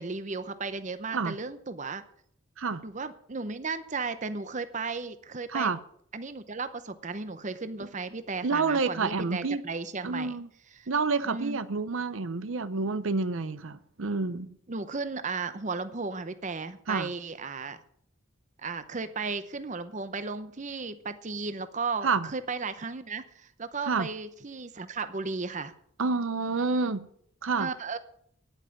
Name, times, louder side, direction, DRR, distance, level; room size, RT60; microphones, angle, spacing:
voice 1, 0.0-2.0 2.8-5.7 6.1-10.4 10.7-10.9 11.2-11.6 14.7-17.8 18.6-25.7 27.6-28.0, right 4 dB, 35° right, 0.8 m, -35 dB
voice 2, 8.4-9.6 10.0-10.5 10.9-14.5 16.9-17.1 22.0-22.3 23.9-24.1 26.0-27.1 27.4-27.7, right 4 dB, 75° right, 0.7 m, -28 dB
9.9 x 9.0 x 8.4 m
head